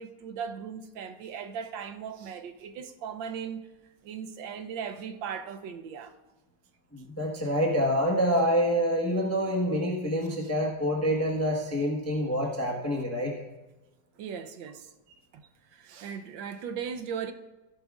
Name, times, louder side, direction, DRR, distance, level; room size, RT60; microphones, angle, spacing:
voice 1, 0.0-3.7 4.0-6.1 14.2-14.9 15.3-17.3, right 7 dB, 85° right, 1.5 m, -38 dB
voice 2, 6.9-13.3, equal, 10° left, 0.9 m, -27 dB
16.0 x 11.0 x 2.4 m
omnidirectional pair, 2.0 m